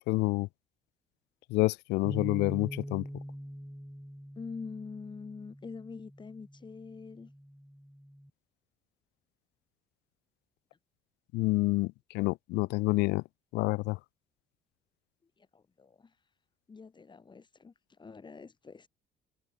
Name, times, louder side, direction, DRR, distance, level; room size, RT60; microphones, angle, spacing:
voice 1, 0.1-0.5 1.5-3.0 11.3-13.2 13.5-14.0, left 22 dB, 90° left, 0.5 m, -28 dB
sound 1, 2.0-8.3, equal, ahead, 7.3 m, -44 dB
voice 2, 4.4-7.3 15.4-16.2 16.7-18.9, left 5 dB, 25° left, 5.7 m, -45 dB
cardioid pair, 110°, 17 cm